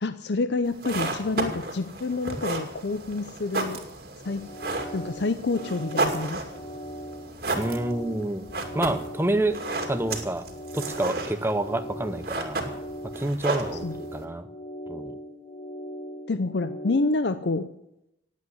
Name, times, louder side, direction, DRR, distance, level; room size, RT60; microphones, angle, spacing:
voice 1, 0.0-3.8 4.2-4.5 4.9-6.4 13.8-13.9 16.3-17.7, left 3 dB, 60° left, 11 dB, 0.6 m, -28 dB
sound 1, 0.6-14.2, right 2 dB, 50° right, 2.4 m, -33 dB
sound 2, 4.2-17.0, equal, 25° left, 1.5 m, -40 dB
voice 2, 7.5-8.5 8.7-9.6 9.9-10.5 10.7-12.6 13.0-14.5 14.9-15.2, right 1 dB, 10° right, 9 dB, 0.7 m, -28 dB
19.0 x 8.5 x 7.9 m, 0.84 s
head